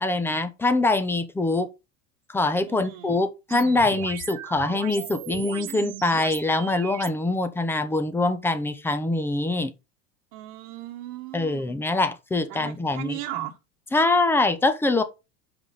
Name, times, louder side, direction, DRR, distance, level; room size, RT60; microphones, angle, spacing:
voice 1, 0.0-1.7 2.3-9.7 11.3-13.2 13.9-15.0, left 2 dB, 5° left, 0.4 m, -24 dB
voice 2, 2.7-3.2 10.3-11.8 12.5-13.6, right 14 dB, 60° right, 1.2 m, -37 dB
sound 1, 3.5-7.1, right 11 dB, 30° right, 0.9 m, -37 dB
5.9 x 4.8 x 5.3 m
supercardioid pair, 130°, 48 cm